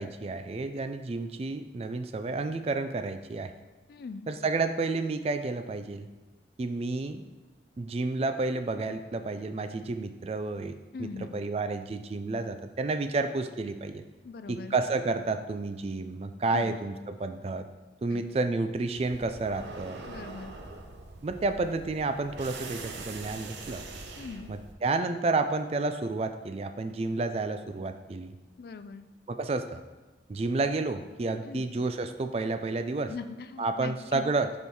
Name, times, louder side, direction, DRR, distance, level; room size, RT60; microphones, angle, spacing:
voice 1, 0.0-3.5 4.3-6.1 6.6-7.2 7.8-14.0 14.5-17.7 18.0-20.0 21.2-23.8 24.5-28.3 29.3-29.8 30.3-33.1 33.6-34.5, right 3 dB, 35° right, 9 dB, 0.3 m, -30 dB
voice 2, 3.9-4.3 10.9-11.4 14.2-14.7 16.5-16.8 18.1-18.2 20.1-20.6 24.2-24.5 28.6-29.1 31.4-31.7 33.1-34.2, left 4 dB, 55° left, 11 dB, 0.3 m, -41 dB
sound 1, 19.0-24.7, right 3 dB, 75° right, 0.7 m, -43 dB
5.5 x 4.4 x 4.7 m, 1.2 s
head